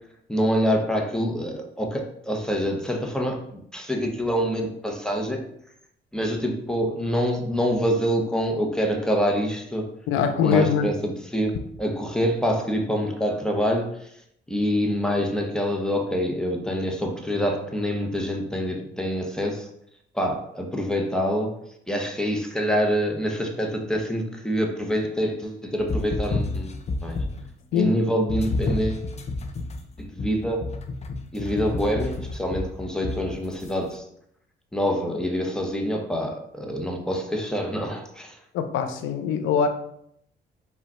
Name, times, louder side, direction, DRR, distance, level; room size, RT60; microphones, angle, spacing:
voice 1, 0.3-5.4 6.1-9.9 10.4-14.1 14.5-19.7 20.1-21.6 21.9-26.7 27.0-27.2 27.7-29.1 30.0-30.6 31.3-34.1 34.7-38.4, equal, 5° left, 2 dB, 0.8 m, -26 dB
voice 2, 10.1-10.9 27.7-28.0 38.5-39.7, left 7 dB, 90° left, 7 dB, 0.6 m, -22 dB
sound 1, 25.8-27.6 28.3-33.7, left 3 dB, 35° left, 0.6 m, -30 dB
4.9 x 2.4 x 4.2 m, 0.71 s
cardioid pair, 90°, 20 cm